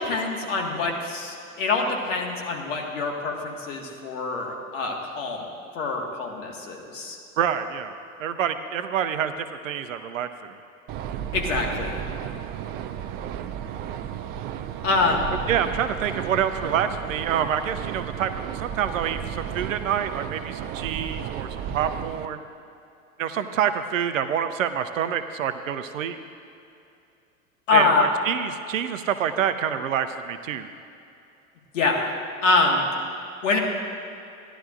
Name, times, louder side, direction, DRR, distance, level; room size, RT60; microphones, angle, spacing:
voice 1, 0.0-5.5 5.8-7.2 11.3-12.0 14.8-15.4 27.7-28.1 31.7-32.1 32.4-32.9 33.4-33.6, left 3 dB, 65° left, 1 dB, 1.9 m, -25 dB
voice 2, 7.4-7.9 8.2-10.5 15.5-22.4 23.2-26.2 27.7-30.7, right 8 dB, 70° right, 10 dB, 0.7 m, -27 dB
sound 1, 10.9-22.3, right 9 dB, 25° right, 0.3 m, -33 dB
17.0 x 11.0 x 2.6 m, 2.6 s
figure-of-eight pair, 85°, 41 cm